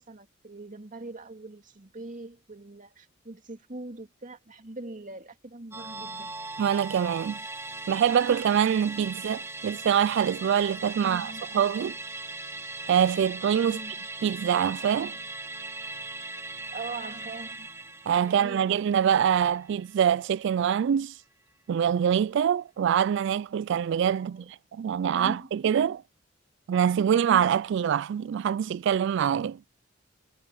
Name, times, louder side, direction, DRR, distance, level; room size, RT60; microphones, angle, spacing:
voice 1, 0.0-6.3 11.0-11.6 13.6-14.1 16.7-17.7 18.2-18.7 24.2-24.5 25.1-25.5, right 2 dB, 40° right, 2.5 m, -42 dB
Musical instrument, 5.7-20.4 20.7-20.8, right 3 dB, 15° right, 1.7 m, -39 dB
voice 2, 6.6-7.4 7.9-12.0 12.9-13.8 14.2-15.2 18.1-21.1 21.7-26.0 26.7-29.6, right 8 dB, 65° right, 0.3 m, -25 dB
head